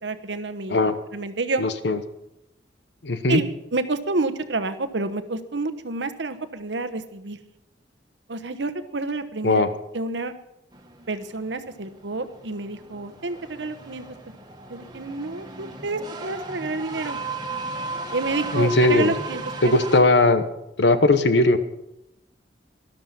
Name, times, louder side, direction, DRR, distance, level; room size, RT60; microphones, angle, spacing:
voice 1, 0.0-0.8 1.1-1.7 3.3-7.4 8.3-9.6 9.9-10.3 11.1-14.0 14.7-17.2 18.1-19.7, right 3 dB, 80° right, 10 dB, 1.1 m, -29 dB
voice 2, 1.6-2.0 3.0-3.4 9.4-9.7 18.5-19.1 19.6-20.4 20.8-21.6, left 2 dB, 70° left, 11 dB, 1.1 m, -18 dB
sound 1, 10.7-20.0, right 3 dB, 25° right, 1.7 m, -36 dB
13.0 x 12.0 x 5.8 m, 0.87 s
head